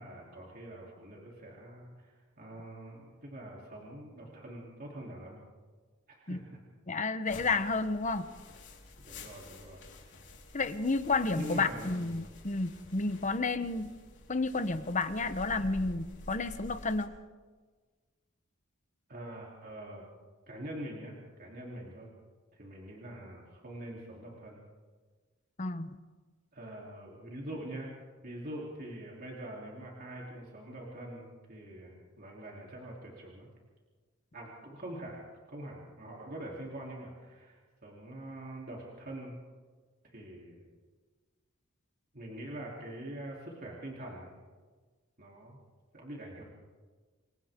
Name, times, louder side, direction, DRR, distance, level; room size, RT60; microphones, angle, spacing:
voice 1, 0.0-5.4 6.1-6.6 9.0-9.8 11.3-12.1 19.1-20.0 20.5-22.1 22.5-24.6 26.5-27.9 28.2-33.5 34.3-39.4 40.0-40.6 42.1-44.3 45.2-45.6 45.9-46.4, right 1 dB, 45° right, -3 dB, 3.3 m, -44 dB
voice 2, 6.9-8.3 10.5-13.9 14.3-17.1 25.6-26.0, left 3 dB, 35° left, 11 dB, 1.0 m, -31 dB
sound 1, 7.2-17.1, left 2 dB, 60° left, 4.2 m, -50 dB
29.0 x 24.0 x 3.7 m, 1.4 s
head